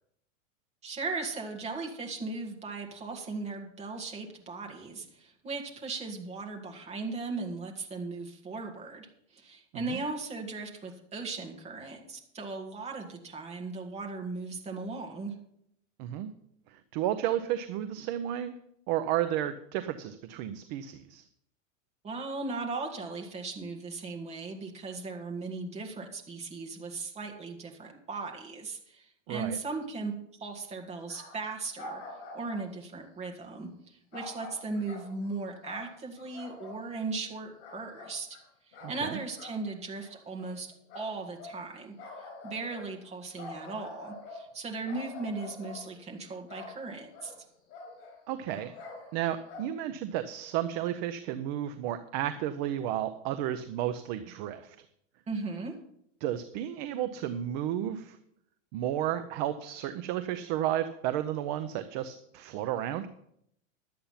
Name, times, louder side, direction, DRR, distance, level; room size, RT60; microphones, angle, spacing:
voice 1, 0.8-15.3 22.0-30.1 30.4-32.0 32.3-38.3 38.7-41.9 42.4-47.3 55.3-55.7, right 3 dB, 15° right, 1 dB, 1.9 m, -37 dB
voice 2, 16.0-16.3 16.7-18.5 18.9-21.2 29.3-29.6 38.8-39.2 48.3-48.7 49.1-54.8 56.2-58.2 58.7-63.1, right 11 dB, 35° right, 10 dB, 0.6 m, -32 dB
sound 1, 31.1-31.5 31.8-32.7 34.1-35.3 35.6-36.8 37.2-38.4 38.7-39.0 39.3-39.6 40.0-40.5 40.9-41.6 42.0-44.5 44.8-45.9 46.5-46.8 47.1-47.4 47.7-49.2 49.5-49.7, left 2 dB, 50° left, 4.7 m, -45 dB
11.5 x 8.5 x 5.7 m, 0.73 s
supercardioid pair, 150°, 38 cm